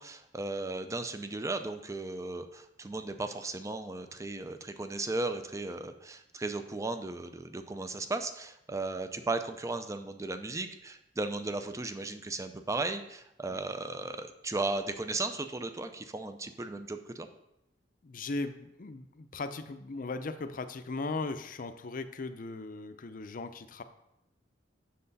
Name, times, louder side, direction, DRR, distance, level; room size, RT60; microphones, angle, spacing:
voice 1, 0.0-17.3, right 2 dB, 15° right, 8 dB, 0.5 m, -36 dB
voice 2, 18.0-23.8, left 3 dB, 50° left, 9 dB, 0.6 m, -38 dB
7.7 x 6.6 x 4.1 m, 0.85 s
head